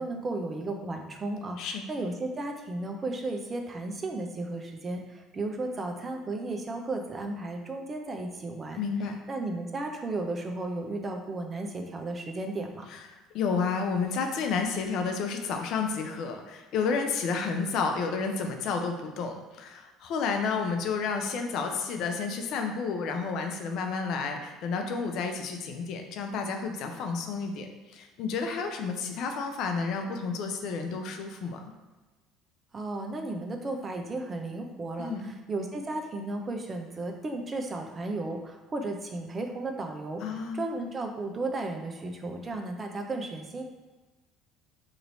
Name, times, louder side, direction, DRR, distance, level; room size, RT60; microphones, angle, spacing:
voice 1, 0.0-8.8 9.3-12.9 32.7-43.6, right 2 dB, 35° right, 4 dB, 0.6 m, -34 dB
voice 2, 8.8-9.2 12.9-13.0 13.3-31.6 35.0-35.2 40.2-40.6, left 5 dB, 65° left, 4 dB, 0.5 m, -31 dB
3.0 x 2.6 x 4.2 m, 1.2 s
hypercardioid pair, 70°, 0 cm